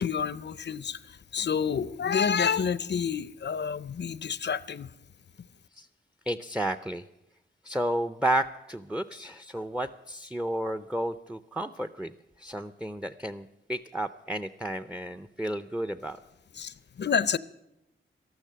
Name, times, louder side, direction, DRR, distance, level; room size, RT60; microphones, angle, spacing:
voice 1, 0.0-4.9 16.5-17.4, left 7 dB, 55° left, 0.6 m, -29 dB
voice 2, 6.3-7.0 7.6-16.2, right 1 dB, 5° right, 0.5 m, -32 dB
13.0 x 12.0 x 7.5 m
cardioid pair, 60°, 21 cm